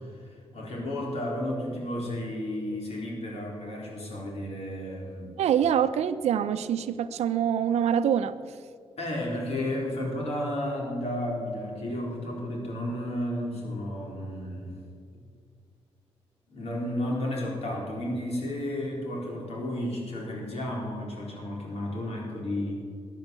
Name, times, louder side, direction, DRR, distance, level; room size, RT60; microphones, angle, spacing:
voice 1, 0.0-5.3 9.0-14.7 15.1-15.2 16.5-22.8, left 1 dB, 75° left, -1 dB, 3.8 m, -32 dB
voice 2, 5.4-8.5, right 8 dB, 90° right, 12 dB, 0.6 m, -25 dB
14.5 x 9.2 x 6.9 m, 2.2 s
cardioid pair, 70°, 11 cm